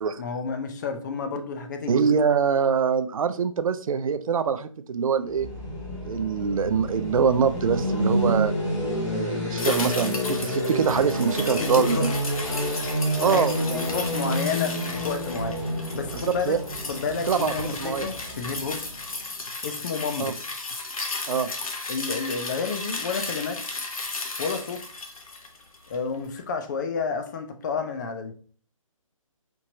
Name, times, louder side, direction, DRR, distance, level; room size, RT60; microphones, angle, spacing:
voice 1, 0.2-2.3 11.6-12.2 13.3-15.6 15.9-16.6 16.9-18.8 19.6-20.4 21.9-23.6 24.4-24.8 25.9-28.3, left 5 dB, 35° left, 6 dB, 0.5 m, -30 dB
voice 2, 1.9-5.5 6.0-8.5 9.1-12.1 13.2-13.9 16.2-16.6 17.3-18.1 20.2-20.3 21.3-21.5, right 6 dB, 75° right, 11 dB, 0.4 m, -24 dB
sound 1, 5.2-19.1, equal, 55° left, 1.8 m, -29 dB
sound 2, 9.6-26.1 26.4-26.5, left 3 dB, 85° left, 0.9 m, -34 dB
4.5 x 2.8 x 2.6 m, 0.43 s
hypercardioid pair, 150°, 18 cm